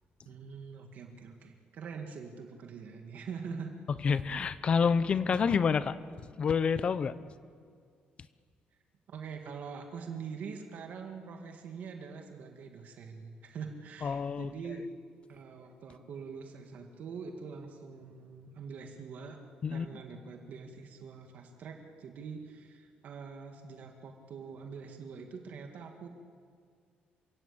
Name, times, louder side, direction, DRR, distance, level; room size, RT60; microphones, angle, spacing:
voice 1, 0.2-3.7 9.1-14.9 15.3-19.4 19.7-26.1, right 5 dB, 50° right, 3 dB, 2.1 m, -44 dB
voice 2, 4.0-6.0 6.4-7.1 14.0-14.5 19.6-19.9, left 6 dB, 30° left, 15 dB, 0.7 m, -28 dB
28.0 x 16.5 x 8.7 m, 2.1 s
cardioid pair, 175°, 3 cm